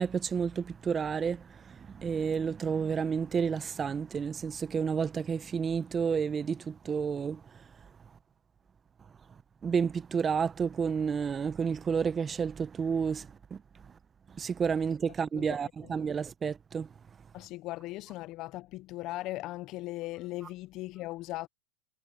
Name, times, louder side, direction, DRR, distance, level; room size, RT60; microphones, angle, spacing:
voice 1, 0.0-7.4 9.6-13.6 14.4-16.9, right 6 dB, 20° right, 0.9 m, -30 dB
voice 2, 15.3-16.0 17.3-21.5, left 18 dB, 45° left, 1.0 m, -39 dB
hypercardioid pair, 115°, 0 cm